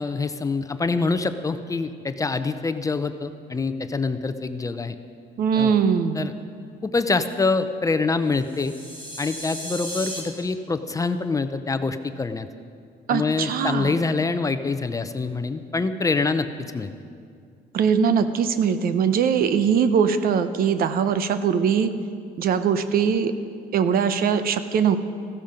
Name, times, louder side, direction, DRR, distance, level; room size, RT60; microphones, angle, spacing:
voice 1, 0.0-4.9 5.5-5.7 6.1-6.3 6.8-8.7 9.2-12.5 13.1-16.9, left 4 dB, 20° left, 10 dB, 0.6 m, -25 dB
voice 2, 5.4-6.3 13.1-14.0 17.7-21.9 22.4-23.3 23.7-25.0, right 7 dB, 60° right, 10 dB, 0.8 m, -21 dB
sound 1, 8.4-10.2, equal, 30° right, 3.7 m, -35 dB
15.0 x 13.0 x 5.2 m, 2.2 s
cardioid pair, 110°, 17 cm